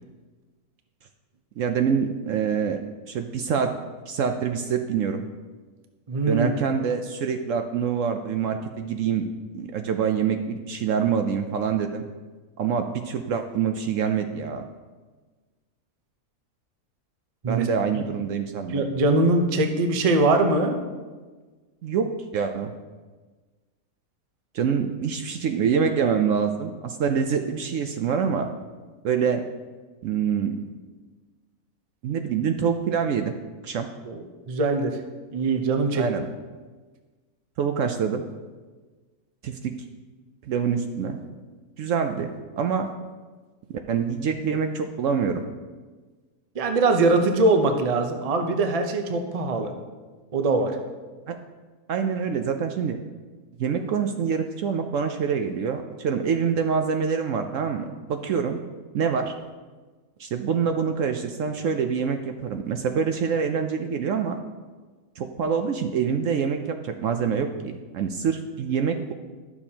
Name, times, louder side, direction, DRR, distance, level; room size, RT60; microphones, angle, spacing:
voice 1, 1.6-2.8 3.1-3.7 4.1-5.3 6.3-9.3 9.5-12.0 12.6-14.6 17.5-18.8 21.8-22.7 24.5-28.5 29.0-29.4 30.0-30.6 32.0-33.3 33.6-33.9 36.0-36.3 37.6-38.3 39.4-39.7 40.4-41.2 41.8-42.9 43.7-45.4 51.3-51.4 51.9-53.0 53.6-58.6 58.9-59.3 60.2-64.4 65.2-69.1, right 6 dB, 70° right, 6 dB, 0.8 m, -25 dB
voice 2, 6.1-6.5 17.4-17.7 17.9-18.0 18.7-20.8 34.1-35.0 35.3-36.1 46.5-49.7 50.3-50.8, right 2 dB, 40° right, 5 dB, 0.5 m, -22 dB
12.0 x 7.0 x 2.8 m, 1.3 s
omnidirectional pair, 1.6 m